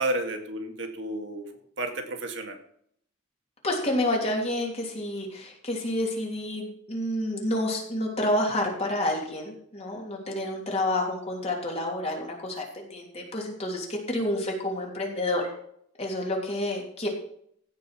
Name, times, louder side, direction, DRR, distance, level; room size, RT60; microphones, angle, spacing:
voice 1, 0.0-1.5 1.8-2.6, right 2 dB, 65° right, 5 dB, 1.9 m, -31 dB
voice 2, 3.6-15.5 16.0-17.1, left 1 dB, 35° left, -1 dB, 3.1 m, -29 dB
16.0 x 5.4 x 5.8 m, 0.67 s
head